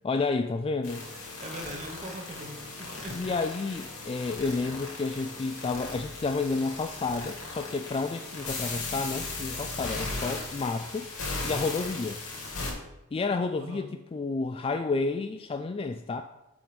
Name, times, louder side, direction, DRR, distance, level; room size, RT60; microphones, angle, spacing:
voice 1, 0.0-1.0 3.1-11.1 11.4-12.2 13.1-16.2, left 3 dB, 25° left, 6 dB, 0.3 m, -30 dB
sound 1, 0.8-12.7, left 3 dB, 85° left, 2.8 m, -37 dB
voice 2, 1.0-3.4 13.6-13.9, right 1 dB, 35° right, 1 dB, 1.0 m, -42 dB
7.1 x 5.1 x 6.0 m, 0.94 s
head